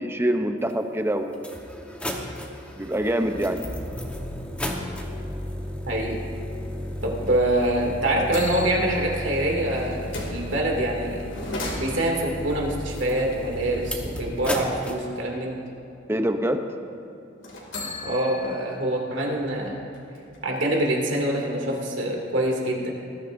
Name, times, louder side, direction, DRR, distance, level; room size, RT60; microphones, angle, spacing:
voice 1, 0.0-1.5 2.8-3.6 16.1-16.6, right 1 dB, 15° right, 6 dB, 0.7 m, -25 dB
sound 1, 0.7-0.8 1.3-14.9, left 1 dB, 5° left, 1.1 m, -34 dB
voice 2, 5.9-6.2 7.0-10.0 10.3-11.2 11.8-15.6 18.0-19.8 20.4-22.9, right 1 dB, 70° right, -1 dB, 2.5 m, -25 dB
sound 2, 7.7-7.8 8.3-10.5 11.2-12.3 17.4-19.0 19.4-19.5 19.9-21.0, left 2 dB, 75° left, 2.6 m, -36 dB
20.0 x 13.0 x 2.6 m, 2.8 s
head